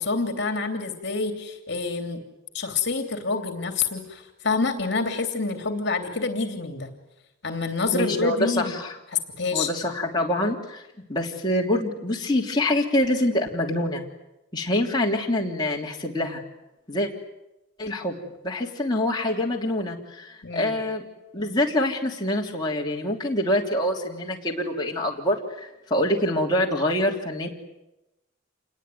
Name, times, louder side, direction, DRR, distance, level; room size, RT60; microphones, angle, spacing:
voice 1, 0.0-2.2 2.5-6.9 7.4-8.7 9.1-9.7 20.4-20.7, left 4 dB, 55° left, 6 dB, 3.0 m, -27 dB
voice 2, 7.9-9.0 9.5-10.8 11.1-14.0 14.5-16.4 16.9-17.1 17.8-21.0 21.3-27.5, left 1 dB, 20° left, -2 dB, 3.2 m, -25 dB
28.0 x 21.0 x 9.4 m, 0.95 s
head